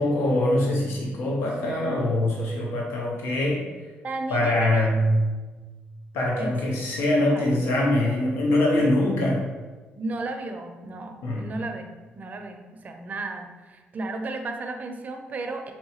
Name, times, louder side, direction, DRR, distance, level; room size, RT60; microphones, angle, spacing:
voice 1, 0.0-3.6 4.3-5.2 6.1-9.4 11.2-11.5, left 1 dB, 90° left, -2 dB, 0.7 m, -23 dB
voice 2, 4.0-4.9 6.4-6.8 7.3-7.6 8.8-8.9 9.9-15.7, right 2 dB, 40° right, 5 dB, 0.5 m, -34 dB
4.4 x 2.7 x 2.8 m, 1.3 s
cardioid pair, 95°, 4 cm